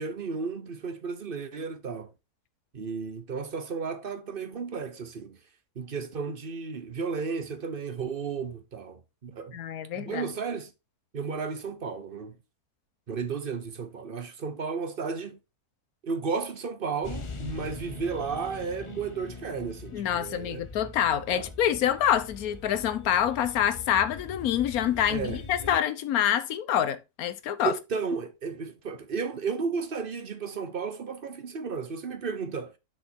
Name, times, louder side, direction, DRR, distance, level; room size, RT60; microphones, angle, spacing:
voice 1, 0.0-2.1 2.7-5.4 5.8-9.6 9.9-10.7 11.1-12.3 13.1-15.4 16.0-20.6 21.3-21.5 25.1-25.7 27.6-32.7, right 5 dB, 45° right, 0.9 m, -33 dB
voice 2, 9.5-10.2 19.9-27.7, left 10 dB, 70° left, 1.2 m, -26 dB
sound 1, 17.0-25.8, left 4 dB, 35° left, 0.5 m, -42 dB
6.7 x 5.1 x 4.2 m
omnidirectional pair, 1.7 m